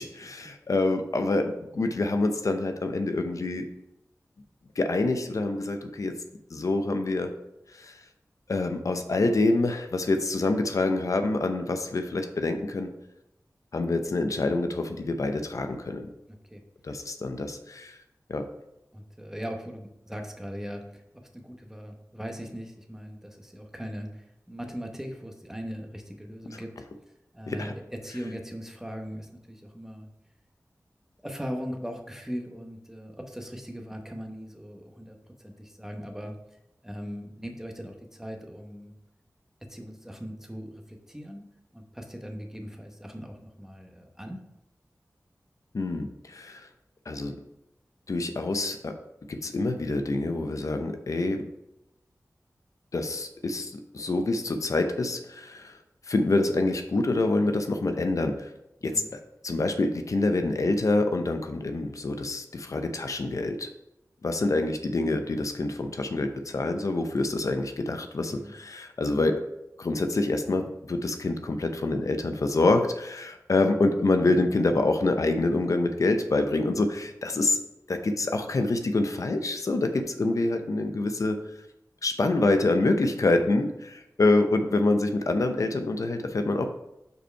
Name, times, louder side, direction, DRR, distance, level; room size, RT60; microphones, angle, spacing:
voice 1, 0.0-3.7 4.8-6.2 6.5-7.3 7.7-8.0 8.5-12.9 13.7-16.1 16.8-18.0 18.3-18.5 26.5-26.6 27.5-27.7 45.7-46.7 47.1-47.3 48.1-49.0 49.3-51.5 52.9-55.8 56.1-58.5 58.8-59.0 59.4-63.7 64.2-69.4 69.8-77.6 77.9-81.4 82.0-86.7, left 2 dB, 65° left, 7 dB, 0.6 m, -26 dB
voice 2, 16.3-16.6 18.9-21.0 21.3-26.7 27.3-30.1 31.2-36.4 36.8-38.9 39.7-41.4 41.7-44.4 58.9-59.1 68.3-68.5 77.3-77.5, equal, 5° right, 3 dB, 0.9 m, -39 dB
5.5 x 4.4 x 4.4 m, 0.87 s
wide cardioid pair, 90°, 6 cm